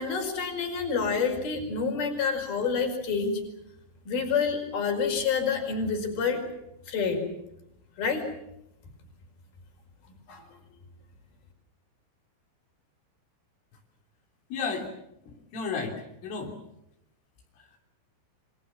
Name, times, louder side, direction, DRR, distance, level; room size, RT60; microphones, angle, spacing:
voice 1, 0.0-3.4 4.1-6.4 6.9-7.2 8.0-8.2 10.3-10.4, left 5 dB, 50° left, 4 dB, 6.7 m, -28 dB
voice 2, 14.5-14.9 15.3-15.9 16.2-16.5, left 5 dB, 85° left, 1 dB, 5.8 m, -32 dB
27.5 x 25.5 x 7.2 m, 0.83 s
omnidirectional pair, 5.5 m